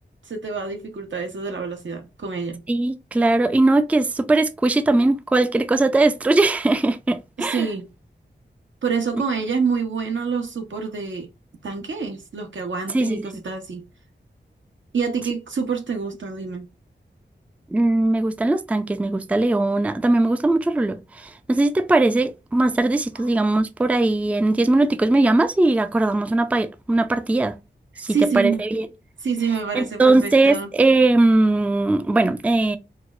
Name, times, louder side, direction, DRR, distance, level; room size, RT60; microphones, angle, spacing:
voice 1, 0.3-2.6 7.4-7.9 8.8-11.3 11.6-13.8 14.9-16.7 28.1-28.6 29.2-30.7, right 5 dB, 90° right, 1.0 m, -27 dB
voice 2, 2.7-7.7 12.9-13.2 17.7-27.6 28.0-28.9 29.7-32.8, right 2 dB, 5° right, 0.3 m, -19 dB
4.6 x 2.0 x 2.4 m
wide cardioid pair, 100°, 19 cm